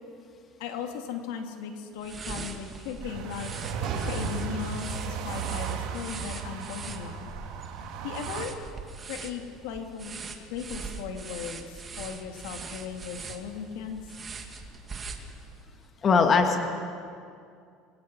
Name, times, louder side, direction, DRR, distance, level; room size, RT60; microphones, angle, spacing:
voice 1, 0.6-3.5 4.1-7.3 8.0-8.6 9.1-10.2 10.5-14.0, left 7 dB, 80° left, 4 dB, 2.6 m, -37 dB
sound 1, 2.0-15.7, right 4 dB, 25° right, 2.3 m, -42 dB
sound 2, 3.0-8.4, right 6 dB, 65° right, 3.4 m, -35 dB
sound 3, 3.8-5.1 5.9-6.0, right 5 dB, 45° right, 6.2 m, -39 dB
voice 2, 16.0-16.6, left 5 dB, 30° left, 4 dB, 2.1 m, -20 dB
27.5 x 22.5 x 6.2 m, 2.4 s
cardioid pair, 140°, 0 cm